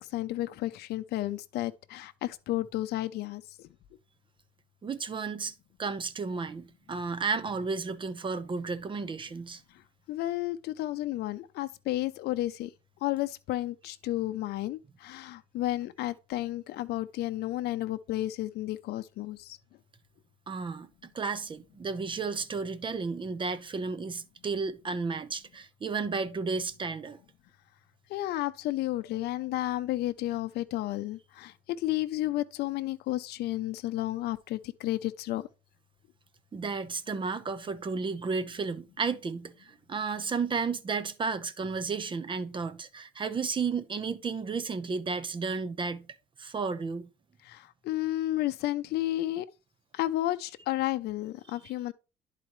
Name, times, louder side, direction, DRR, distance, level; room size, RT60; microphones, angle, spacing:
voice 1, 0.0-3.4 10.1-12.7 13.0-19.6 28.1-35.5 47.5-49.5 49.9-51.9, left 15 dB, 75° left, 0.5 m, -32 dB
voice 2, 4.8-5.5 5.8-9.6 20.5-27.2 36.5-46.1 46.4-47.1, right 4 dB, 30° right, 0.9 m, -33 dB
11.0 x 4.1 x 3.0 m
cardioid pair, 110°, 17 cm